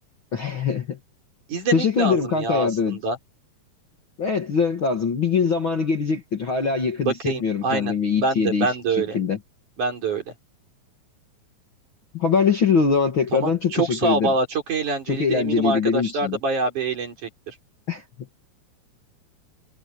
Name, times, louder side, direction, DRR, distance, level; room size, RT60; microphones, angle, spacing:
voice 1, 0.3-1.0 1.7-3.0 4.2-8.7 9.0-9.4 12.1-14.3 15.1-16.4 17.9-18.0, left 5 dB, 45° left, 1.9 m, -22 dB
voice 2, 1.5-3.2 7.0-9.2 9.8-10.2 13.3-17.5, right 3 dB, 55° right, 5.8 m, -25 dB
omnidirectional pair, 4.3 m